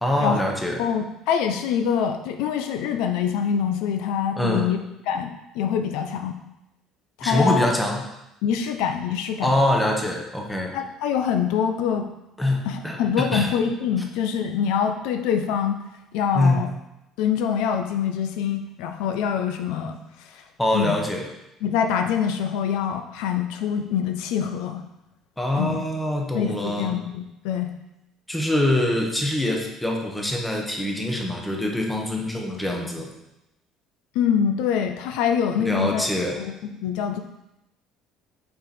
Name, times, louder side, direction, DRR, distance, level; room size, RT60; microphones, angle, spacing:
voice 1, 0.0-0.8 4.4-4.7 7.2-8.0 9.4-10.7 12.4-13.5 16.3-16.7 20.6-21.2 25.4-26.9 28.3-33.1 35.6-36.4, left 1 dB, 5° left, 1 dB, 1.0 m, -24 dB
voice 2, 0.8-4.8 5.1-5.3 5.5-6.4 7.2-7.7 8.4-9.5 10.7-12.0 12.6-15.8 16.1-16.7 17.2-20.4 20.7-21.0 21.6-24.8 25.6-25.8 26.3-27.7 34.1-36.1 36.4-36.5 36.8-37.2, left 8 dB, 85° left, 6 dB, 0.6 m, -25 dB
6.3 x 4.6 x 4.2 m, 0.90 s
cardioid pair, 150°, 0 cm